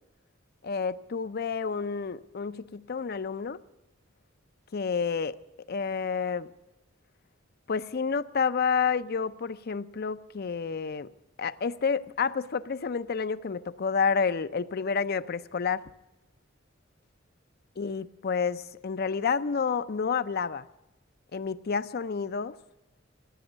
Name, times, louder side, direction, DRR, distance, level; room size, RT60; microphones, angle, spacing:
voice 1, 0.6-3.6 4.7-5.4 5.7-6.5 7.7-11.1 11.4-15.8 17.8-20.7 21.3-22.5, left 5 dB, 50° left, 0.5 m, -29 dB
16.0 x 9.7 x 9.1 m
head